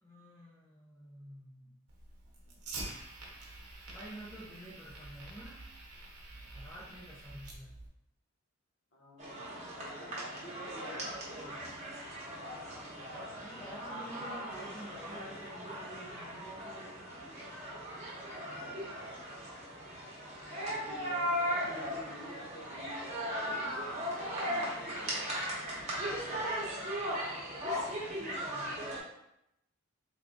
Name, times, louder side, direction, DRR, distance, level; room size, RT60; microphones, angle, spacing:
voice 1, 0.0-1.8 3.9-5.7 6.5-7.8 13.4-17.0 28.0-28.8, equal, 10° left, -6 dB, 0.5 m, -49 dB
Fire, 1.9-7.9, right 2 dB, 85° right, 0.8 m, -47 dB
voice 2, 8.9-11.5 18.4-19.2 20.5-25.4, equal, 50° left, -5 dB, 1.1 m, -49 dB
sound 1, 9.2-29.0, equal, 30° right, 1.0 m, -38 dB
3.3 x 2.4 x 3.7 m, 0.83 s
head